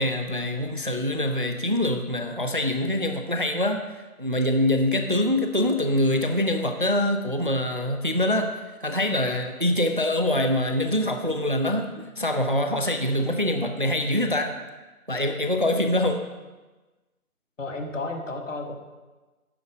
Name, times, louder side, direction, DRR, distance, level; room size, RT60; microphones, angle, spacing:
voice 1, 0.0-8.5 8.8-14.5 15.1-16.3, left 1 dB, 35° right, 6 dB, 0.5 m, -24 dB
voice 2, 17.6-18.7, left 2 dB, 55° left, 3 dB, 1.6 m, -32 dB
9.7 x 7.8 x 5.1 m, 1.2 s
figure-of-eight pair, 175°, 44 cm